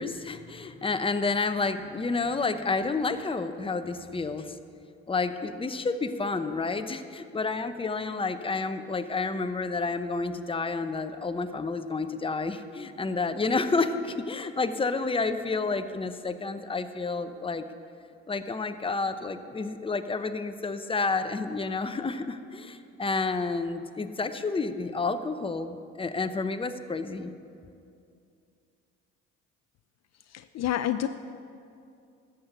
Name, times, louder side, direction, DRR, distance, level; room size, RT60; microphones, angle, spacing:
voice 1, 0.0-4.6 5.1-17.6 18.3-27.4, left 3 dB, 15° left, 9 dB, 0.8 m, -30 dB
voice 2, 30.3-31.1, left 11 dB, 50° left, 11 dB, 0.5 m, -28 dB
13.5 x 8.3 x 6.7 m, 2.5 s
supercardioid pair, 75°, 33 cm